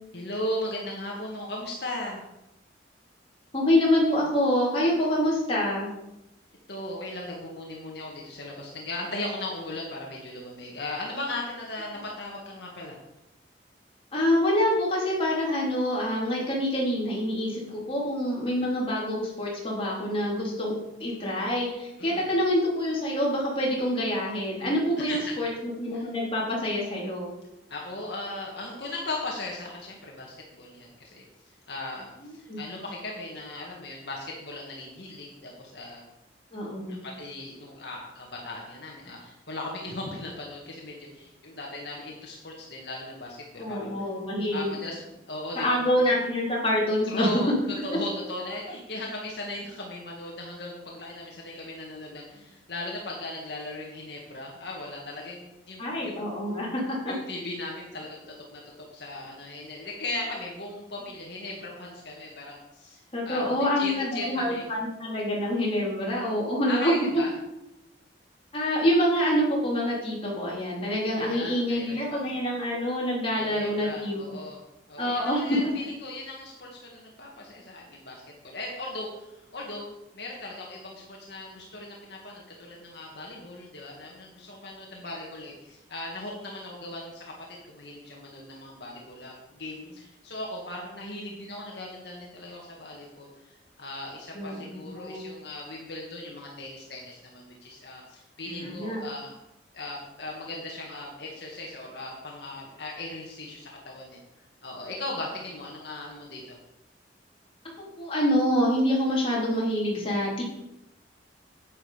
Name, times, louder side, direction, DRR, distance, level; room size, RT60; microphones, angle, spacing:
voice 1, 0.1-2.2 6.7-13.0 18.5-18.7 22.0-22.3 25.0-25.5 25.9-26.1 27.7-31.2 31.7-36.0 36.9-44.1 44.5-45.8 47.1-47.5 47.8-56.2 57.1-58.2 58.5-58.6 58.9-64.6 66.7-67.3 71.2-72.2 73.4-74.6 74.9-99.4 99.7-104.2 104.6-106.6, left 2 dB, 65° left, -2 dB, 1.9 m, -38 dB
voice 2, 3.5-5.9 14.1-20.7 21.0-25.5 25.8-27.3 32.2-32.6 36.5-37.0 43.6-44.8 45.6-47.3 55.8-57.1 63.1-66.9 68.5-74.3 75.0-75.7 94.3-95.2 98.5-99.0 108.0-110.4, equal, 30° left, -4 dB, 3.6 m, -26 dB
9.8 x 9.1 x 5.1 m, 0.92 s
head